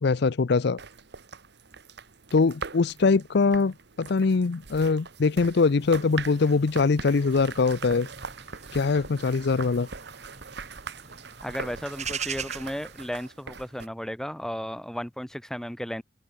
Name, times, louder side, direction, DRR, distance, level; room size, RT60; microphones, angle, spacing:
voice 1, 0.0-0.8 2.3-8.1 8.7-9.9, left 4 dB, 60° left, 0.5 m, -23 dB
sound 1, 0.8-13.9, right 5 dB, 65° right, 1.7 m, -41 dB
sound 2, 5.8-13.1, right 7 dB, 40° right, 6.3 m, -42 dB
voice 2, 11.4-16.0, equal, 5° left, 1.1 m, -34 dB
open air
head